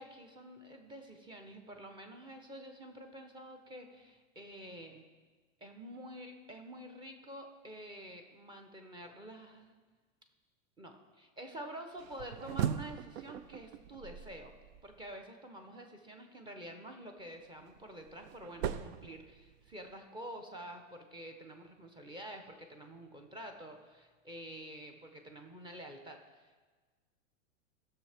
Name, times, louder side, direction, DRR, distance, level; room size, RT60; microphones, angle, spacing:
voice 1, 0.0-5.0 5.6-9.8 10.8-14.5 14.8-26.5, right 1 dB, 10° right, 5 dB, 0.9 m, -48 dB
sound 1, 12.0-15.1 17.3-19.9, right 9 dB, 60° right, 0.6 m, -40 dB
15.5 x 6.7 x 3.5 m, 1.4 s
supercardioid pair, 140°, 38 cm